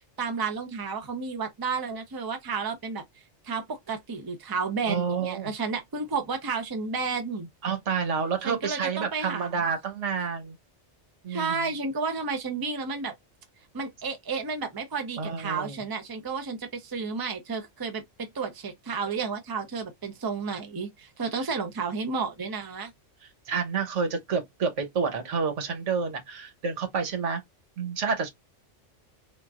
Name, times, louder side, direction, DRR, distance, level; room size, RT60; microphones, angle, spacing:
voice 1, 0.2-3.0 3.4-7.5 8.4-9.6 11.3-13.1 13.7-22.9, right 5 dB, 25° right, 0.6 m, -32 dB
voice 2, 4.9-5.5 7.6-10.5 11.2-11.7 15.2-15.8 21.3-21.5 23.5-27.4 27.8-28.3, right 5 dB, 90° right, 1.3 m, -29 dB
3.8 x 2.4 x 2.4 m
omnidirectional pair, 1.2 m